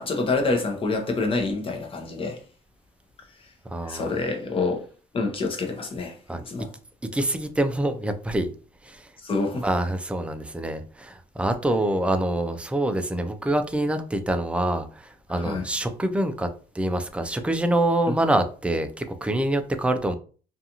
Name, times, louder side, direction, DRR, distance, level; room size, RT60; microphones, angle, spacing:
voice 1, 0.0-2.4 3.8-4.8 5.1-6.2 6.5-6.7 9.2-9.6 15.4-15.6, left 3 dB, 30° left, 0.7 m, -27 dB
voice 2, 3.7-4.1 6.3-6.4 7.1-8.5 8.8-9.1 9.6-16.5 16.7-20.1, right 1 dB, 5° right, 0.3 m, -25 dB
2.5 x 2.4 x 2.8 m
cardioid pair, 110°, 17 cm